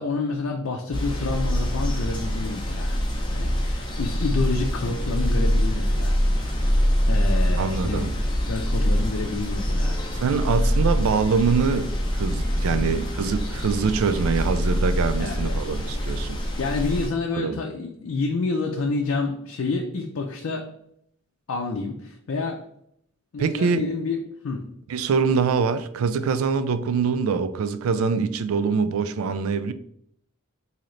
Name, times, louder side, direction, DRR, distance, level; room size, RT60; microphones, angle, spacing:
voice 1, 0.0-3.0 3.3-6.2 7.1-8.1 8.5-10.0 12.7-13.0 15.2-15.6 16.6-20.7 21.5-22.6 23.3-24.7, left 3 dB, 65° left, 0.5 m, -28 dB
sound 1, 0.9-17.1, equal, 20° left, 0.6 m, -24 dB
voice 2, 7.6-8.1 10.1-16.4 17.3-17.6 23.4-23.8 24.9-29.7, right 5 dB, 75° right, 0.3 m, -24 dB
3.8 x 2.8 x 3.1 m
head